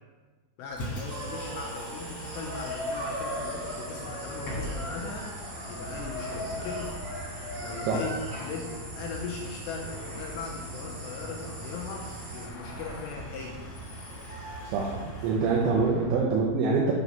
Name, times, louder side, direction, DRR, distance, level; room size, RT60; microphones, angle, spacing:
voice 1, 0.6-6.9 7.3-13.6 15.2-15.3 15.6-15.7, left 4 dB, 80° left, -1 dB, 2.6 m, -39 dB
Bus, 0.7-16.1, equal, 45° left, 1.9 m, -40 dB
sound 1, 1.1-12.5, equal, 55° right, 3.4 m, -39 dB
voice 2, 14.6-16.9, right 4 dB, 80° right, -2 dB, 3.0 m, -25 dB
8.5 x 4.0 x 5.5 m, 1.4 s
omnidirectional pair, 5.5 m